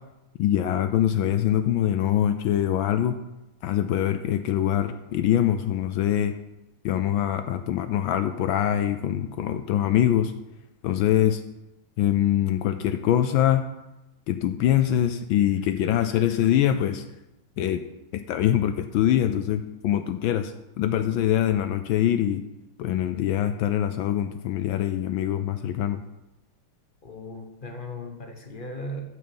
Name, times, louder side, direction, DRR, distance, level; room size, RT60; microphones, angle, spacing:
voice 1, 0.4-3.2 3.6-6.3 6.8-10.3 10.8-11.4 12.0-13.6 14.3-17.0 17.6-17.8 18.3-22.4 22.8-26.0, left 11 dB, 75° left, 9 dB, 1.3 m, -23 dB
voice 2, 27.0-29.0, left 1 dB, 30° left, 4 dB, 1.1 m, -37 dB
8.7 x 6.7 x 7.1 m, 0.96 s
omnidirectional pair, 2.3 m